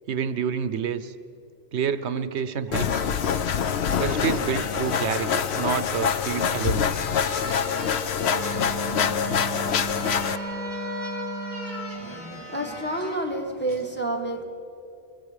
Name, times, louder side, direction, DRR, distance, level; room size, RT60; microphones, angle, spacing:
voice 1, 0.1-1.1 1.7-3.1 4.0-6.9, right 7 dB, 90° right, 13 dB, 1.1 m, -28 dB
sound 1, 2.4-2.5 2.8-13.2 13.7-13.9, left 1 dB, 60° right, 5.3 m, -39 dB
sound 2, 2.7-10.4, left 7 dB, 75° left, 1.0 m, -25 dB
Wind instrument woodwind instrument, 8.3-12.2, right 2 dB, 40° left, 1.4 m, -35 dB
voice 2, 11.9-14.4, right 1 dB, 10° left, 1 dB, 1.5 m, -29 dB
25.5 x 22.5 x 5.0 m, 3.0 s
omnidirectional pair, 1.1 m